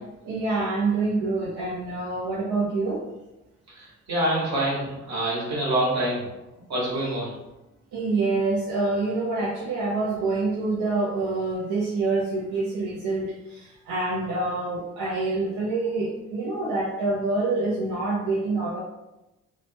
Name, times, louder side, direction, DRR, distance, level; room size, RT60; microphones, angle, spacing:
voice 1, 0.2-3.0 7.9-18.8, right 3 dB, 90° right, -7 dB, 0.7 m, -26 dB
voice 2, 3.8-6.2 6.7-7.3, right 1 dB, 65° right, -5 dB, 1.3 m, -26 dB
2.9 x 2.2 x 2.7 m, 1.0 s
cardioid pair, 90°, 30 cm